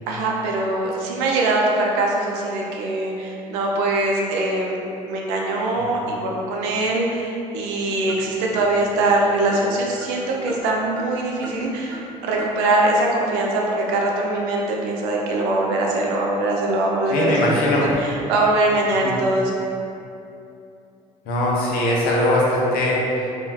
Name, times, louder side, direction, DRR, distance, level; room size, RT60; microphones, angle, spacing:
voice 1, 0.1-4.8 5.1-19.5, right 2 dB, 70° right, -1 dB, 0.5 m, -22 dB
sound 1, 8.0-11.2 11.4-12.1 12.4-12.5 12.9-13.0, right 1 dB, 5° left, 0.5 m, -39 dB
voice 2, 17.1-17.9 19.0-19.2 21.3-23.2, left 1 dB, 55° left, -4 dB, 0.6 m, -20 dB
3.2 x 2.1 x 2.2 m, 2.7 s
hypercardioid pair, 55°, 18 cm